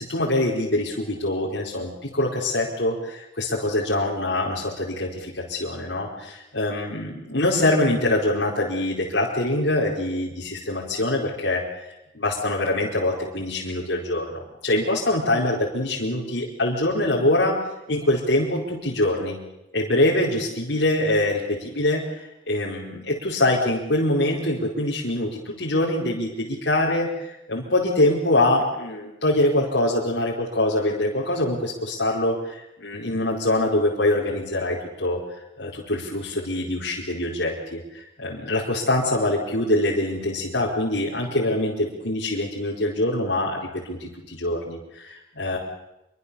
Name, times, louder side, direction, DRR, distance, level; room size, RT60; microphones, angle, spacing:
voice 1, 0.0-11.8 12.1-17.6 17.9-19.4 19.7-35.2 35.6-45.6, left 1 dB, 80° left, -5 dB, 4.7 m, -24 dB
26.5 x 23.5 x 7.1 m, 0.90 s
head